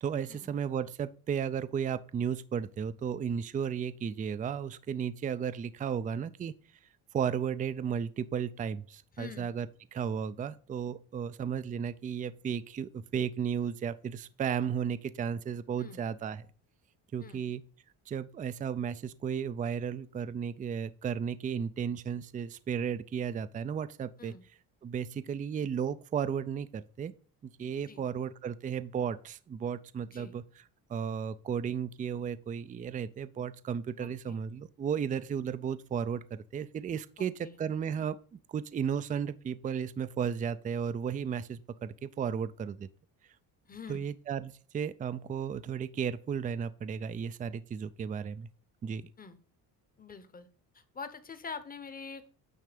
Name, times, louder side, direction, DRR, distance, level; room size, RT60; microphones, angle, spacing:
voice 1, 0.0-6.5 7.1-9.7 9.9-16.5 17.1-17.6 18.1-24.3 24.8-27.1 27.4-30.4 30.9-37.3 37.6-42.9 43.9-48.5 48.8-49.1, right 7 dB, 20° right, 0.4 m, -34 dB
voice 2, 9.1-9.5 15.8-16.0 17.2-17.4 24.2-24.4 27.9-28.0 30.1-30.3 34.0-34.4 37.2-37.5 43.7-44.0 49.2-49.4 50.0-50.5 50.7-52.3, left 5 dB, 25° left, 0.9 m, -45 dB
9.3 x 3.3 x 5.1 m
cardioid pair, 120°, 38 cm